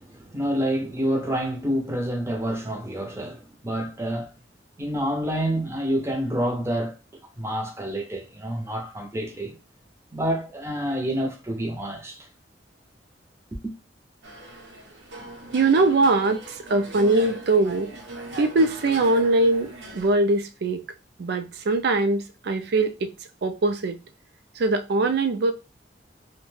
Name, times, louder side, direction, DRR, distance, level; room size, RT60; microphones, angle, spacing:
voice 1, 0.0-4.3 4.8-6.9 7.4-9.6 10.1-12.3 13.6-13.7, equal, 15° right, 0.6 m, -28 dB
sound 1, 14.2-20.1, right 2 dB, 80° right, 0.8 m, -39 dB
voice 2, 15.5-17.9 18.4-20.8 21.2-23.1 23.4-24.0 24.6-25.5, right 2 dB, 60° right, 0.4 m, -22 dB
2.4 x 2.1 x 3.2 m
head